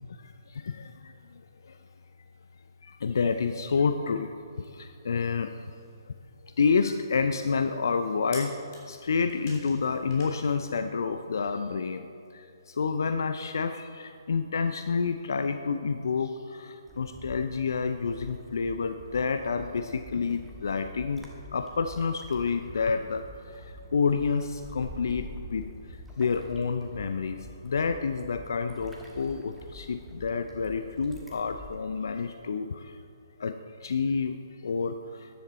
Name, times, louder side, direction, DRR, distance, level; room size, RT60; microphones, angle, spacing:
voice 1, 0.2-1.1 1.6-1.8 2.8-4.3 4.6-5.5 6.6-8.6 8.9-12.1 12.3-25.7 26.2-32.9 33.4-34.4 34.6-35.3, left 5 dB, 60° left, 9 dB, 0.5 m, -29 dB
sound 1, 5.3-10.7, left 3 dB, 40° left, 3.3 m, -51 dB
sound 2, 16.9-31.8, equal, ahead, 1.5 m, -46 dB
14.0 x 10.5 x 4.1 m, 2.6 s
figure-of-eight pair, 130°, 2 cm